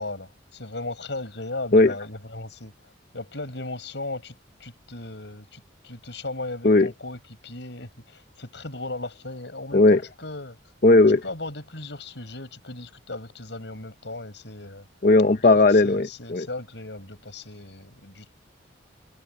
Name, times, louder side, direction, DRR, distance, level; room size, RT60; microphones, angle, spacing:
voice 1, 0.0-10.7 11.2-14.9 15.7-18.3, left 2 dB, 70° left, 6.2 m, -37 dB
voice 2, 10.8-11.2 15.0-16.5, left 2 dB, 50° left, 0.8 m, -17 dB
head